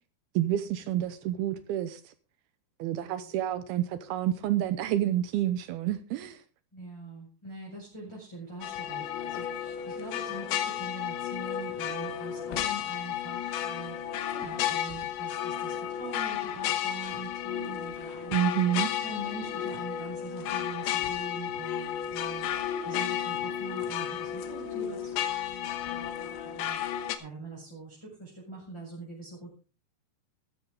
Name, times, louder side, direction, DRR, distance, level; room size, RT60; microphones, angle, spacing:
voice 1, 0.4-2.1 2.8-6.4 18.3-18.9, right 12 dB, 80° right, 2.5 m, -29 dB
voice 2, 6.7-18.6 19.0-22.5 22.8-29.5, right 2 dB, 5° left, 5.1 m, -44 dB
sound 1, 8.6-27.2, left 10 dB, 90° left, 3.4 m, -33 dB
14.0 x 14.0 x 3.6 m
omnidirectional pair, 4.9 m